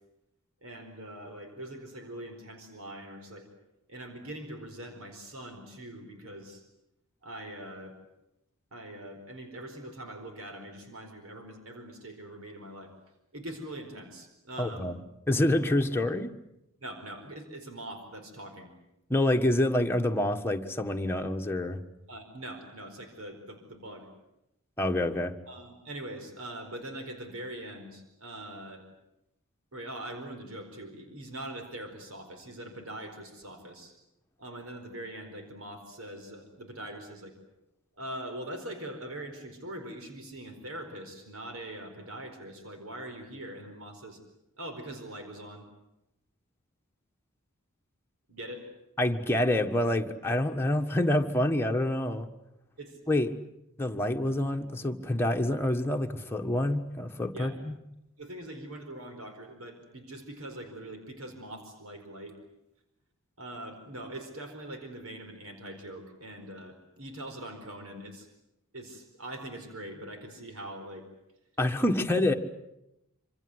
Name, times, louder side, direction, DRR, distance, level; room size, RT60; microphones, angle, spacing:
voice 1, 0.6-3.5 3.9-6.6 7.2-8.0 8.7-12.9 13.3-14.9 16.8-18.7 22.1-24.1 25.5-28.8 29.7-33.9 34.4-37.3 38.0-44.2 44.6-45.7 48.3-48.7 52.8-53.0 57.3-57.5 58.2-62.4 63.4-68.3 68.7-71.1, right 1 dB, 70° right, 6 dB, 4.6 m, -42 dB
voice 2, 14.6-14.9 15.3-16.3 19.1-21.8 24.8-25.3 49.0-52.3 53.1-53.3 53.8-57.8 71.6-72.3, left 1 dB, 10° left, 3 dB, 1.5 m, -27 dB
27.0 x 26.0 x 8.0 m, 0.86 s
head